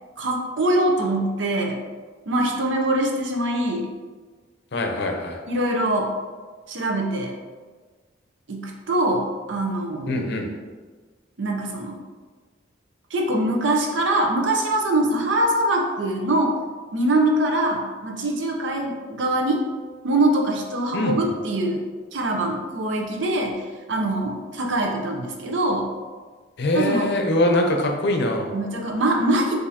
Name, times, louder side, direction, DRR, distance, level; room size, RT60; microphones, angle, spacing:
voice 1, 0.2-1.8 2.3-3.9 5.5-6.1 6.7-7.4 8.5-10.1 11.4-12.0 13.1-16.6 16.9-19.6 20.0-21.8 22.1-25.9 26.7-27.1 28.5-29.6, right 1 dB, 70° right, 1 dB, 0.7 m, -23 dB
voice 2, 4.7-5.4 10.1-10.5 20.9-21.2 26.6-28.5, left 1 dB, 60° left, 3 dB, 0.6 m, -22 dB
6.2 x 2.7 x 2.8 m, 1.4 s
head